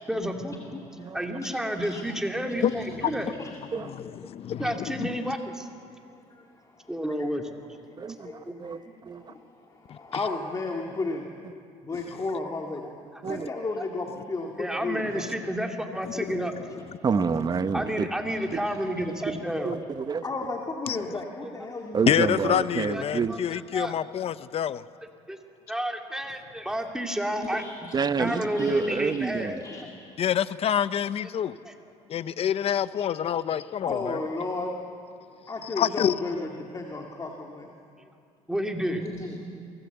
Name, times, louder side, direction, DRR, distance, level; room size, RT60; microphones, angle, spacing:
voice 1, 0.1-0.6 1.1-3.3 4.6-5.7 6.9-7.4 8.5-8.6 12.7-12.8 13.3-13.4 13.8-13.9 14.6-16.5 17.7-19.7 21.1-21.5 22.9-23.0 23.7-23.9 25.3-25.4 25.7-27.6 28.2-29.5 31.6-31.8 38.5-39.0 39.5-39.6, equal, 5° right, 3 dB, 2.4 m, -30 dB
voice 2, 0.7-1.1 1.4-2.2 2.6-3.5 6.1-6.4 6.8-7.0 8.2-11.3 11.8-12.8 13.3-15.6 16.7-16.8 17.5-18.0 20.2-22.2 27.5-29.2 29.6-30.2 33.0-33.1 33.9-34.7 35.5-37.7 38.9-39.4, left 3 dB, 25° left, 2 dB, 2.1 m, -35 dB
voice 3, 3.7-5.3 9.9-10.0 16.0-16.4 20.9-21.0 22.1-24.8 30.2-31.6 32.1-34.2 35.8-36.1, left 10 dB, 50° left, 15 dB, 0.7 m, -27 dB
voice 4, 8.0-9.3 13.2-13.5 17.0-18.1 18.5-18.6 19.6-20.2 21.9-23.4 27.9-29.6, right 5 dB, 30° right, 12 dB, 0.9 m, -28 dB
23.5 x 18.0 x 8.1 m, 2.4 s
supercardioid pair, 95°, 14 cm